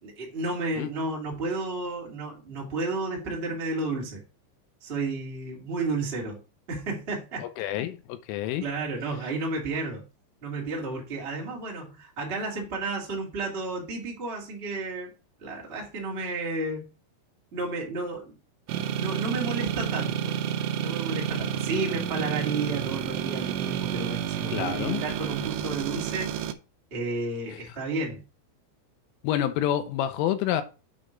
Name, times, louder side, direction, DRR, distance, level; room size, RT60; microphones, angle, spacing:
voice 1, 0.0-4.2 4.8-6.4 6.7-7.4 8.6-10.0 10.4-15.1 15.4-16.9 17.5-18.4 19.0-20.3 20.8-26.3 26.9-28.2, right 3 dB, 65° right, 0.6 m, -32 dB
voice 2, 7.4-8.6 24.5-25.0 29.2-30.6, left 11 dB, 85° left, 3.3 m, -28 dB
sound 1, 18.7-26.5, right 10 dB, 85° right, 2.5 m, -30 dB
8.4 x 4.5 x 5.1 m
omnidirectional pair, 5.8 m